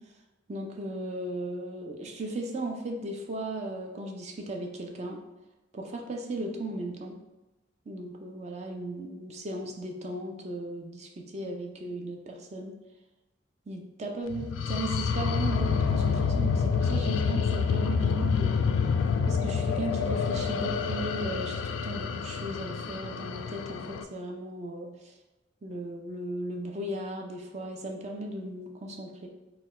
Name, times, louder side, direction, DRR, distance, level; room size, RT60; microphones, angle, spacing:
voice 1, 0.5-5.2 5.7-7.2 7.9-12.8 13.7-18.7 19.2-25.1 25.6-29.3, right 1 dB, 35° right, 2 dB, 0.4 m, -36 dB
sound 1, 14.3-24.0, left 6 dB, 80° left, 0.3 m, -28 dB
4.3 x 2.2 x 4.1 m, 1.1 s
head